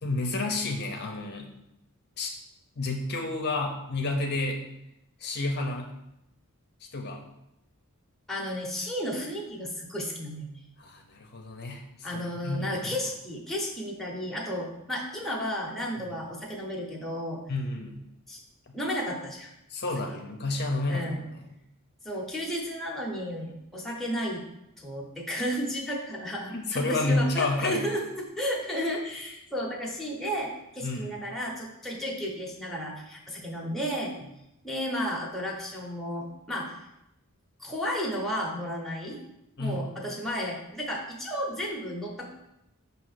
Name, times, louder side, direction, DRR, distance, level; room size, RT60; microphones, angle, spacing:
voice 1, 0.0-1.5 2.2-2.3 2.8-4.6 5.2-5.9 6.9-7.2 10.8-13.0 17.5-18.0 19.7-21.6 26.5-27.9 30.8-31.2 39.6-39.9, left 2 dB, 50° left, 2 dB, 0.7 m, -30 dB
voice 2, 8.3-10.6 12.0-17.4 18.3-18.4 18.7-19.5 20.9-21.2 22.0-24.4 24.8-34.1 34.6-36.7 37.6-39.2 39.6-42.3, equal, ahead, -4 dB, 1.0 m, -33 dB
6.3 x 2.8 x 5.7 m, 0.85 s
head